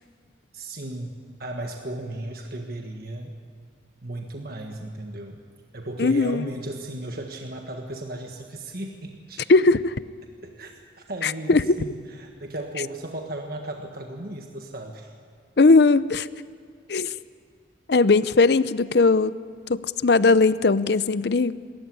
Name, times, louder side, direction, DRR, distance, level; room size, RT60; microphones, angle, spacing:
voice 1, 0.5-3.4 4.0-5.4 5.7-9.5 10.4-10.7 11.1-15.1, right 1 dB, 55° right, 2 dB, 1.6 m, -35 dB
voice 2, 6.0-6.5 9.5-9.9 11.2-11.8 15.6-16.3 16.9-17.1 17.9-19.3 19.7-21.5, left 3 dB, 60° left, 16 dB, 0.6 m, -19 dB
26.5 x 14.0 x 9.6 m, 2.2 s
head